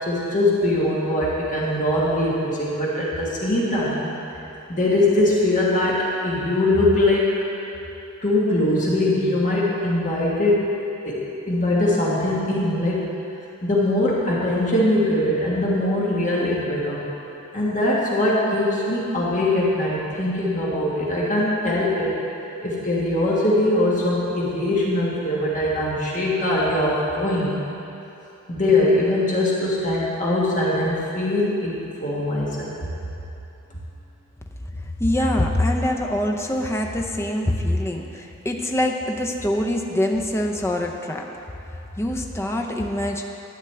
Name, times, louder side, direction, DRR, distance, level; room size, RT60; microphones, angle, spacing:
voice 1, 0.0-4.1 4.7-7.4 8.2-10.8 11.0-11.2 11.5-13.0 13.6-17.1 17.5-22.1 22.6-27.6 28.5-32.7, left 1 dB, 35° left, -6 dB, 1.6 m, -21 dB
voice 2, 34.7-41.3 42.0-43.2, left 1 dB, 10° left, 1 dB, 0.6 m, -24 dB
11.5 x 8.9 x 3.4 m, 3.0 s
head